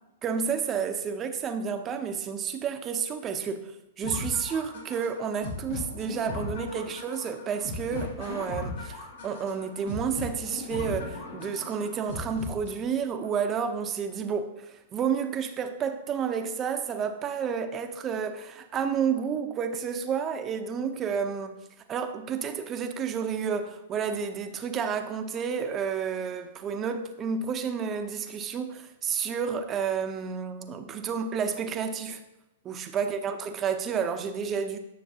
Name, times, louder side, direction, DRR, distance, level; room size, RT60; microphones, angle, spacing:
voice 1, 0.2-21.6 21.9-32.2 32.6-34.8, right 6 dB, 25° right, 7 dB, 0.7 m, -30 dB
sound 1, 4.0-13.0, left 3 dB, 70° left, 2.0 m, -37 dB
9.4 x 6.4 x 2.8 m, 0.96 s
hypercardioid pair, 125°, 0 cm